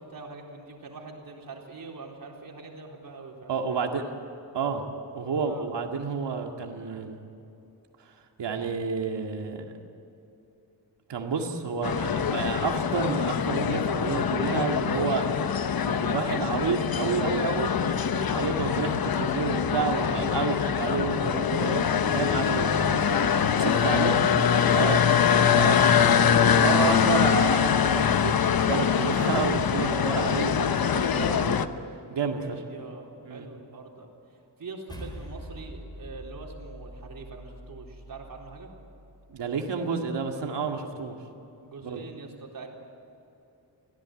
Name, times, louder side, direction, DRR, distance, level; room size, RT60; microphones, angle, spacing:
voice 1, 0.0-4.2 5.5-5.7 23.9-25.5 32.4-38.7 41.6-42.7, right 3 dB, 55° right, 0 dB, 4.0 m, -44 dB
voice 2, 3.5-4.0 4.5-4.8 5.1-7.2 8.1-9.7 11.1-15.2 15.9-23.1 23.5-24.2 24.7-25.1 25.5-31.7 32.1-32.6 33.3-33.5 39.3-41.2 41.8-42.0, right 5 dB, 90° right, 3 dB, 2.1 m, -30 dB
sound 1, 11.8-31.7, left 8 dB, 60° left, 1.0 m, -24 dB
sound 2, 34.9-39.4, equal, 10° left, 4.1 m, -44 dB
25.5 x 17.0 x 9.1 m, 2.8 s
wide cardioid pair, 150°, 41 cm